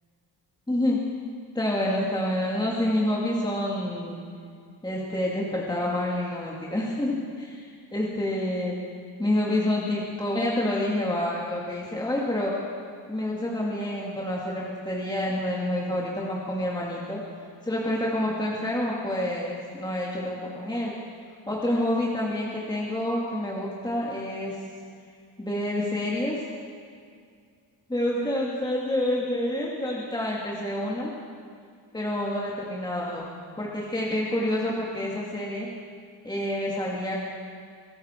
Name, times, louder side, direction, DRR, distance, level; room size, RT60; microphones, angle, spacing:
voice 1, 0.7-1.0 1.5-4.2 4.8-8.8 9.2-12.5 13.1-17.2 17.6-20.9 21.5-24.6 25.4-26.4 27.9-31.1 31.9-33.3 33.6-35.7 36.2-37.2, left 1 dB, 10° left, -4 dB, 2.1 m, -28 dB
23.5 x 13.5 x 4.4 m, 2.2 s
cardioid pair, 120°, 42 cm